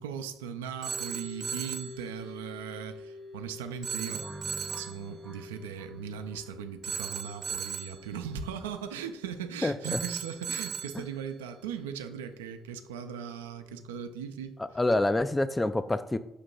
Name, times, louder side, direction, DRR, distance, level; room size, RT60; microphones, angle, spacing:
voice 1, 0.0-4.3 4.7-14.6, right 7 dB, 90° right, 0.4 m, -38 dB
sound 1, 0.7-15.5, left 3 dB, 70° left, 1.7 m, -50 dB
Telephone, 0.8-2.0 3.8-5.0 6.8-8.0 9.8-11.0, right 6 dB, 50° right, 0.7 m, -36 dB
sound 2, 4.1-7.0, right 1 dB, 15° right, 0.7 m, -48 dB
voice 2, 9.6-10.0 14.8-16.2, left 2 dB, 15° left, 0.3 m, -27 dB
6.4 x 2.9 x 5.2 m
hypercardioid pair, 50°, 0 cm